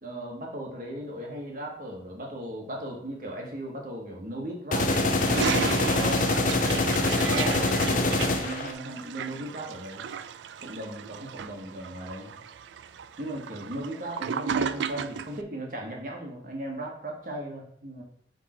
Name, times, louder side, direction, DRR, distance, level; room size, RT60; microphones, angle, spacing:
voice 1, 0.0-6.3 6.9-10.1 10.6-12.3 13.2-18.0, right 1 dB, 50° right, 0 dB, 1.5 m, -37 dB
sound 1, 4.7-8.7, left 2 dB, 45° left, 0.6 m, -24 dB
Toilet flush, 4.7-15.4, right 7 dB, 85° right, 0.3 m, -34 dB
6.3 x 3.7 x 4.4 m, 0.65 s
head